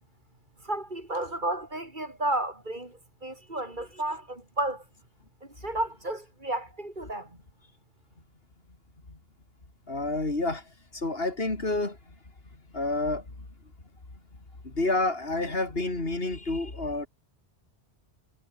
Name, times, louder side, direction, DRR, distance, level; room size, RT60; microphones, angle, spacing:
voice 1, 0.6-4.8 5.4-7.4, right 1 dB, 50° right, 4.2 m, -32 dB
voice 2, 9.9-10.6 10.9-12.0 12.7-13.3 14.6-17.1, left 2 dB, 65° left, 3.8 m, -29 dB
omnidirectional pair, 1.1 m